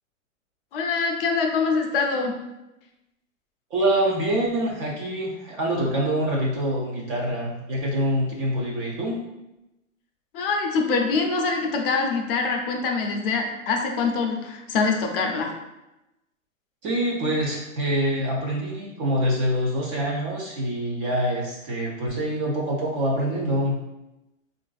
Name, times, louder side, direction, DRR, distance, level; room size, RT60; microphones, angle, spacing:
voice 1, 0.7-2.3 10.3-15.5, left 4 dB, 45° left, 3 dB, 0.5 m, -24 dB
voice 2, 3.7-9.2 16.8-23.8, right 1 dB, 25° right, -3 dB, 0.4 m, -25 dB
3.8 x 2.5 x 2.3 m, 0.95 s
hypercardioid pair, 125°, 40 cm